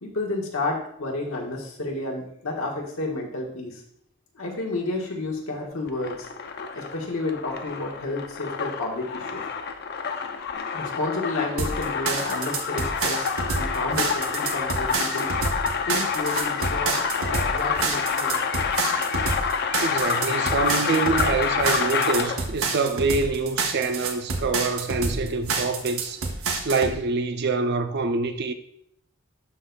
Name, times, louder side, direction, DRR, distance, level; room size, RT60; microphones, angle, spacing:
voice 1, 0.0-3.8 4.3-6.3 6.7-9.4 10.7-15.3 15.9-18.4, left 2 dB, 80° left, 1.4 m, -31 dB
sound 1, 5.9-22.5, left 6 dB, 50° left, 0.5 m, -28 dB
sound 2, 11.6-26.9, right 4 dB, 75° right, 0.9 m, -28 dB
voice 2, 19.8-26.2 26.6-28.5, right 4 dB, 55° right, 0.5 m, -25 dB
11.5 x 4.0 x 2.3 m
head